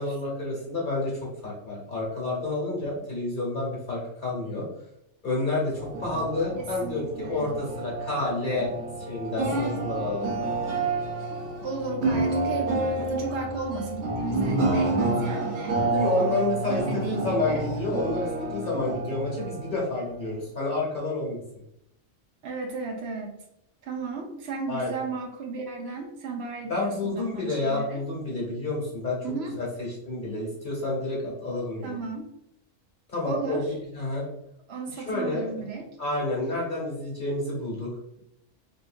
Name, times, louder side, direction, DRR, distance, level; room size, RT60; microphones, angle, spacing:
voice 1, 0.0-4.7 5.2-8.7 9.0-10.3 15.9-21.4 24.7-24.9 26.7-29.2 29.5-32.0 33.1-34.3 35.0-35.5 36.0-37.9, left 2 dB, 40° left, -4 dB, 1.1 m, -29 dB
sound 1, 5.7-20.4, right 2 dB, 80° right, 1.2 m, -29 dB
voice 2, 6.6-7.5 11.6-15.8 16.2-17.6 22.4-23.4 23.8-28.0 29.2-29.5 31.8-32.3 33.2-33.7 34.7-35.8, right 4 dB, 65° right, 2 dB, 0.8 m, -34 dB
3.6 x 2.6 x 2.5 m, 0.80 s
omnidirectional pair, 1.4 m